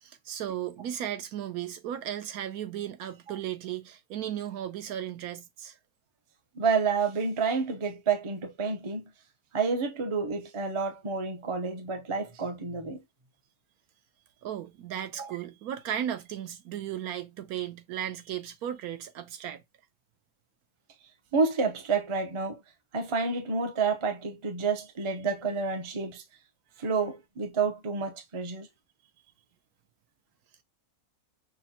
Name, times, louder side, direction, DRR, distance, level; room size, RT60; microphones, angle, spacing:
voice 1, 0.0-5.8 14.4-19.6, right 10 dB, 80° right, 1.1 m, -35 dB
voice 2, 6.5-9.0 9.5-13.0 15.2-15.3 21.3-22.6 22.9-26.2 26.8-28.7, right 5 dB, 40° right, 0.4 m, -29 dB
6.1 x 2.2 x 2.8 m
omnidirectional pair, 1.6 m